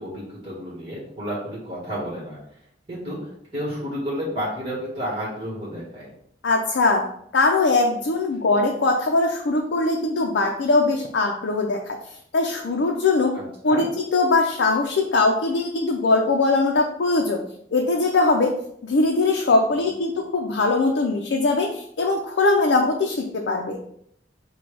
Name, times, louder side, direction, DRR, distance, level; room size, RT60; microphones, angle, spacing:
voice 1, 0.0-2.4 2.9-6.1 13.3-13.9, equal, 30° right, -6 dB, 1.5 m, -31 dB
voice 2, 6.4-7.0 7.3-12.0 12.3-13.3 13.6-17.4 17.7-18.5 18.8-23.8, left 3 dB, 80° left, 1 dB, 0.5 m, -21 dB
6.8 x 2.3 x 3.3 m, 0.71 s
head